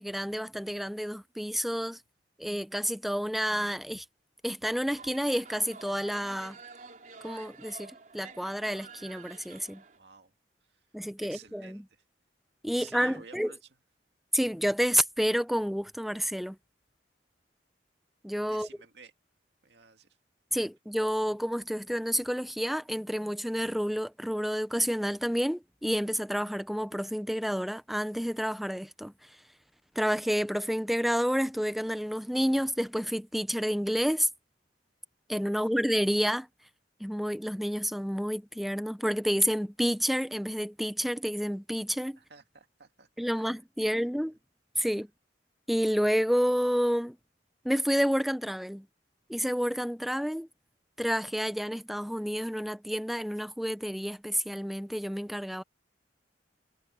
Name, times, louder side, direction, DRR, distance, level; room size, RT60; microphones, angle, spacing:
voice 1, 0.0-2.0 2.4-4.0 4.4-6.6 7.2-9.8 10.9-11.8 12.6-13.5 14.3-16.6 18.2-18.7 20.5-29.1 30.0-34.3 35.3-36.5 37.0-42.2 43.2-44.3 44.8-45.1 45.7-47.2 47.6-48.9 49.3-50.5 51.0-55.6, equal, ahead, 0.7 m, -29 dB
sound 1, 4.9-10.0, right 5 dB, 45° right, 4.1 m, -49 dB
voice 2, 9.9-10.3 11.2-12.0 12.7-13.7 18.5-19.1 19.6-20.1 35.5-35.8 42.2-43.9 44.2-44.3, right 5 dB, 65° right, 2.3 m, -53 dB
head